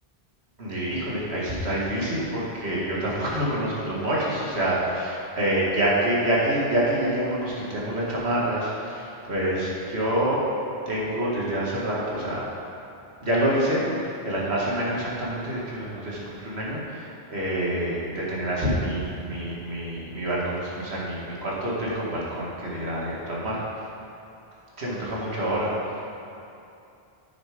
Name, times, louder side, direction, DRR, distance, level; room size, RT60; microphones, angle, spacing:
voice 1, 0.6-10.4 10.9-12.5 13.2-23.6 24.8-26.2, right 1 dB, 90° right, -6 dB, 2.1 m, -27 dB
9.0 x 6.8 x 5.0 m, 2.7 s
omnidirectional pair, 1.1 m